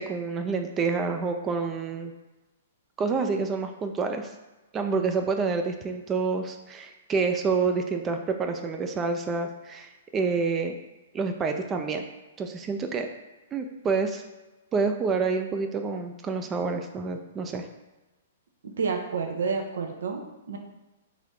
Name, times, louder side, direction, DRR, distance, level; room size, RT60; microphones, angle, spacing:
voice 1, 0.0-2.1 3.0-4.3 4.7-10.8 11.1-12.0 12.4-13.1 13.5-14.2 14.7-17.7, right 4 dB, 20° right, 5 dB, 0.4 m, -28 dB
voice 2, 18.6-20.6, right 5 dB, 75° right, 4 dB, 0.7 m, -30 dB
4.0 x 2.7 x 4.6 m, 1.1 s
hypercardioid pair, 125°, 0 cm